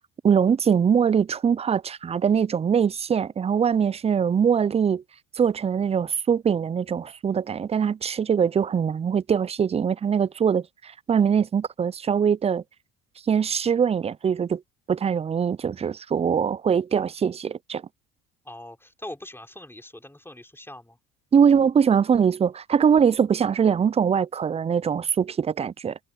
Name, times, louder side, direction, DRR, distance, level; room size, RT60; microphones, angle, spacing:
voice 1, 0.2-5.0 5.4-12.6 13.3-14.6 14.9-17.8 21.3-26.0, right 7 dB, 20° right, 0.3 m, -22 dB
voice 2, 18.4-21.0, left 1 dB, 5° left, 5.0 m, -42 dB
supercardioid pair, 75°, 34 cm